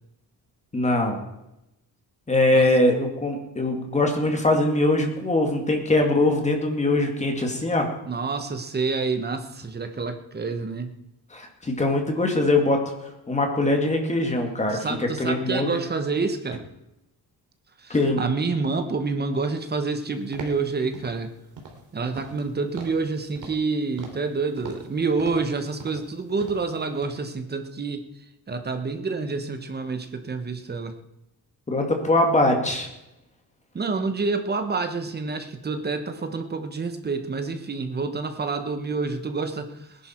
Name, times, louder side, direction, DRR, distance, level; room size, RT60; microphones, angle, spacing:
voice 1, 0.7-1.2 2.3-7.9 11.3-12.8 13.3-15.7 17.9-18.2 31.7-32.9, left 2 dB, 15° left, 3 dB, 2.3 m, -22 dB
voice 2, 8.1-11.0 14.7-16.6 17.8-21.3 21.9-28.1 28.5-30.9 33.7-40.1, right 4 dB, 25° right, 8 dB, 1.2 m, -28 dB
sound 1, 20.3-20.6 20.9-21.2 21.6-21.8 22.1-22.5 22.8-23.0 23.3-23.7 24.0-24.3 24.6-24.9 25.2-25.5 25.8-26.1 26.4-26.7 27.0-27.1, right 4 dB, 50° right, 3.1 m, -41 dB
19.0 x 11.0 x 4.6 m, 0.89 s
cardioid pair, 165°, 40 cm